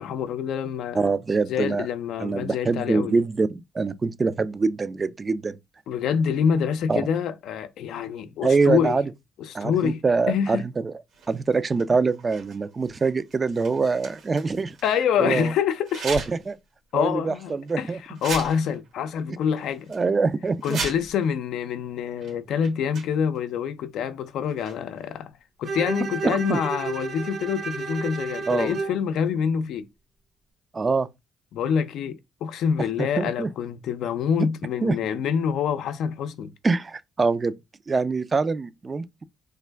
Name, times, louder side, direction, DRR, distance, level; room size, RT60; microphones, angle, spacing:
voice 1, 0.0-1.1 1.5-3.2 5.9-9.0 9.4-10.0 10.3-10.7 14.8-16.0 16.9-19.9 20.6-25.3 25.6-29.9 31.5-36.5, left 7 dB, 80° left, 0.4 m, -26 dB
voice 2, 0.9-1.9 2.2-5.6 6.9-7.1 8.4-9.1 9.5-10.9 11.3-14.7 15.2-15.5 16.0-16.6 16.9-18.0 19.9-20.8 26.2-26.6 28.5-28.8 30.7-31.1 33.0-33.5 34.4-34.5 34.8-35.0 36.6-37.5 37.9-39.2, right 4 dB, 30° right, 0.3 m, -24 dB
sound 1, 11.1-15.0 15.8-16.5 16.9-17.1 17.7-17.8 18.1-18.9 19.2-19.3 19.6-20.0 20.5-21.3 22.2-22.3 22.6-23.4 24.4-25.0, right 3 dB, 85° right, 1.8 m, -37 dB
Bowed string instrument, 25.6-29.0, right 4 dB, 50° right, 0.8 m, -32 dB
3.3 x 2.2 x 3.3 m
cardioid pair, 90°, 0 cm